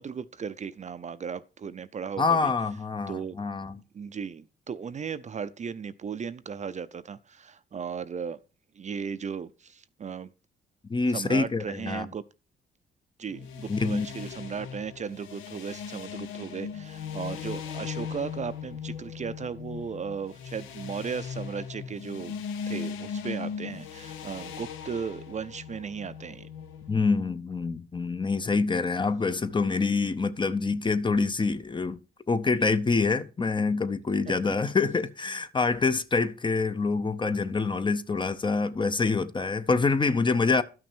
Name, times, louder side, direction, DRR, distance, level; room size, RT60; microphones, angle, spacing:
voice 1, 0.0-2.5 3.1-3.4 3.9-8.4 8.7-10.3 11.1-12.2 13.2-22.4 22.7-26.5 34.5-34.6, right 6 dB, 35° right, 0.6 m, -36 dB
voice 2, 2.2-3.8 10.9-12.1 13.7-14.1 26.9-32.0 32.3-40.6, left 4 dB, 25° left, 0.7 m, -26 dB
sound 1, 13.3-27.0, left 7 dB, 90° left, 1.0 m, -38 dB
12.0 x 6.1 x 4.4 m
cardioid pair, 90°, 20 cm